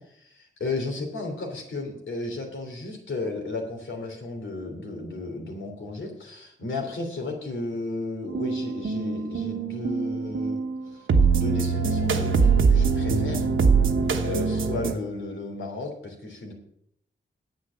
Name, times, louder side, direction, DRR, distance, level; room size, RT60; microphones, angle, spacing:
voice 1, 0.1-11.1 11.3-13.5 14.2-16.5, left 2 dB, 75° left, 2 dB, 3.2 m, -34 dB
sound 1, 8.3-14.9, right 5 dB, 85° right, 1.2 m, -23 dB
10.0 x 8.2 x 7.0 m, 0.74 s
wide cardioid pair, 145°, 20 cm